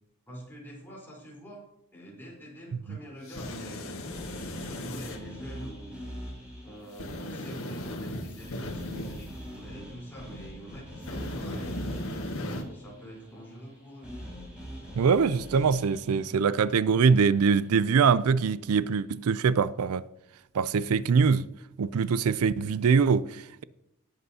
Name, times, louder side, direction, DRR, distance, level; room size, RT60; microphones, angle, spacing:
voice 1, 0.3-1.6 1.9-3.9 4.3-6.2 6.6-14.1, equal, 10° left, 3.9 m, -45 dB
sound 1, 3.3-5.2 7.0-9.3 11.0-12.6, left 1 dB, 70° left, 1.6 m, -37 dB
sound 2, 4.1-18.2, equal, 5° right, 4.8 m, -44 dB
voice 2, 14.9-20.0 20.5-21.5 21.8-23.6, right 5 dB, 90° right, 0.4 m, -23 dB
18.5 x 7.9 x 2.8 m
head